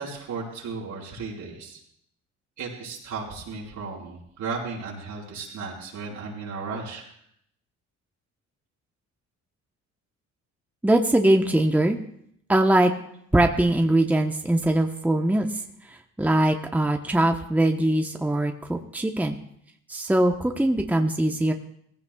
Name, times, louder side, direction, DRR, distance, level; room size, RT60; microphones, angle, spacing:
voice 1, 0.0-1.8 2.6-7.0, right 4 dB, 75° right, -4 dB, 4.7 m, -35 dB
voice 2, 10.8-12.0 12.5-12.9 13.3-15.5 16.2-19.4 19.9-21.5, right 1 dB, 5° right, 3 dB, 1.0 m, -21 dB
18.5 x 15.5 x 2.4 m, 0.70 s
cardioid pair, 90°, 30 cm